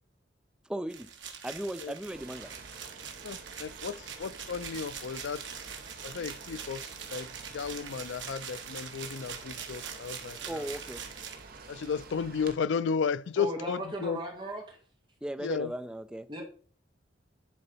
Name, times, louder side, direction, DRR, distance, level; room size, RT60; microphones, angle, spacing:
voice 1, 0.7-1.1 1.4-2.5 10.5-11.0 15.2-16.3, right 1 dB, 5° right, 0.3 m, -37 dB
sound 1, 0.9-12.1, right 7 dB, 80° right, 1.5 m, -43 dB
sound 2, 2.1-12.5, right 3 dB, 55° right, 1.1 m, -49 dB
voice 2, 3.2-5.4 6.0-7.3 7.5-10.7 11.7-14.2 15.4-15.7, left 6 dB, 75° left, 0.4 m, -34 dB
voice 3, 13.4-14.8 16.3-16.4, equal, 25° right, 2.0 m, -37 dB
10.5 x 4.0 x 5.6 m
head